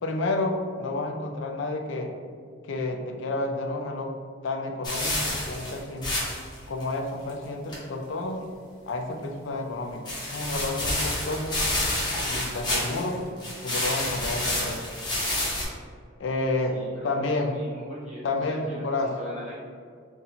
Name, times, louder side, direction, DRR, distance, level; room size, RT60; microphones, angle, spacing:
voice 1, 0.0-2.1 2.7-4.1 4.4-6.1 6.7-8.4 8.9-11.6 12.3-13.2 13.6-14.9 16.2-16.8 17.0-17.5 18.2-19.1, left 2 dB, 65° left, 3 dB, 0.4 m, -30 dB
sound 1, 4.8-6.5 6.8-6.9 7.3-7.4 7.7-7.8 10.1-13.1 13.4-15.6, left 1 dB, 20° left, 0.7 m, -29 dB
voice 2, 16.6-18.9 19.2-19.5, left 1 dB, 35° right, -8 dB, 1.1 m, -41 dB
4.1 x 2.6 x 2.7 m, 2.1 s
head